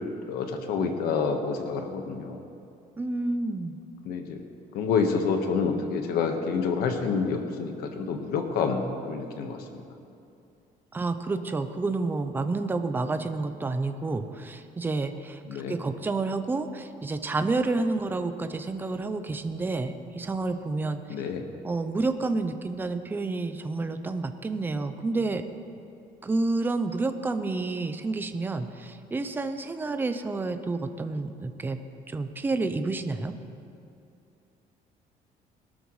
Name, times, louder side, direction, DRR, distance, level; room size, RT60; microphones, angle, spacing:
voice 1, 0.3-2.4 4.0-4.4 4.7-9.8 15.5-15.8 21.1-21.4, left 5 dB, 85° left, 5 dB, 1.4 m, -28 dB
voice 2, 3.0-3.8 10.9-21.0 21.6-25.4 26.2-31.8 32.1-33.3, right 3 dB, 15° right, 9 dB, 0.5 m, -29 dB
20.0 x 12.5 x 3.2 m, 2.6 s
cardioid pair, 160°, 15 cm